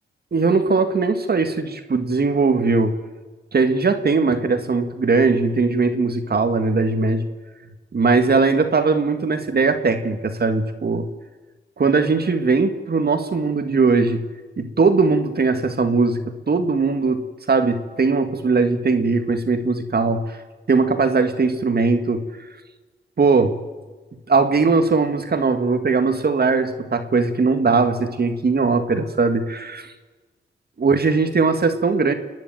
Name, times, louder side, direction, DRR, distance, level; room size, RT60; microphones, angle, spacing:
voice 1, 0.3-3.0 3.5-7.3 7.9-11.1 11.8-14.2 14.6-16.2 16.5-20.2 20.7-22.2 23.2-23.6 24.3-29.9 30.8-32.1, right 4 dB, 55° right, 7 dB, 2.0 m, -19 dB
29.0 x 10.5 x 9.0 m, 1.3 s
cardioid pair, 60°, 20 cm